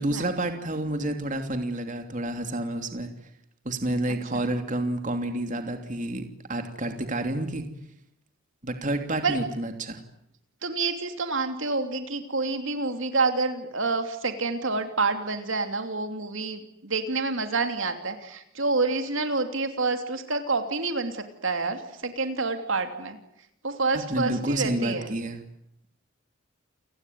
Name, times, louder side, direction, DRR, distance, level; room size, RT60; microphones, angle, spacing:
voice 1, 0.0-3.1 3.6-7.7 8.6-10.0 23.9-25.4, right 1 dB, 35° right, 6 dB, 3.0 m, -29 dB
voice 2, 4.1-4.5 9.2-9.4 10.6-23.2 23.6-25.1, right 3 dB, 65° right, 7 dB, 2.9 m, -28 dB
29.5 x 19.5 x 9.4 m, 0.77 s
head